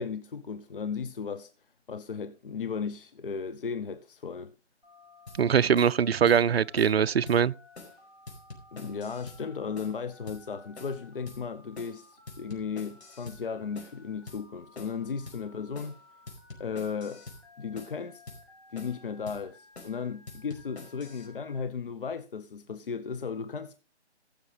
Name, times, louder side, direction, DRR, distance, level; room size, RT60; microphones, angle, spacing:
voice 1, 0.0-1.5 1.9-4.5 8.7-16.0 16.6-17.2 17.6-18.2 18.7-23.8, left 6 dB, 50° left, 0.8 m, -35 dB
Telephone, 4.8-21.6, left 2 dB, ahead, 1.4 m, -57 dB
sound 1, 5.3-5.4 5.8-6.0 6.3-6.4 6.8-7.0 7.3-7.4 7.8-8.0 8.3-9.4 9.8-10.0 10.3-10.4 10.8-11.0 11.3-11.4 11.8-12.0 12.3-13.4 13.8-14.0 14.3-14.4 14.8-15.0 15.3-15.4 15.8-16.0 16.3-17.4 17.8-18.0 18.3-18.4 18.8-19.0 19.3-19.4 19.8-20.0 20.3-21.3, left 3 dB, 70° left, 5.0 m, -46 dB
voice 2, 5.4-7.5, right 7 dB, 60° right, 0.5 m, -22 dB
15.5 x 6.5 x 4.8 m
hypercardioid pair, 165°, 34 cm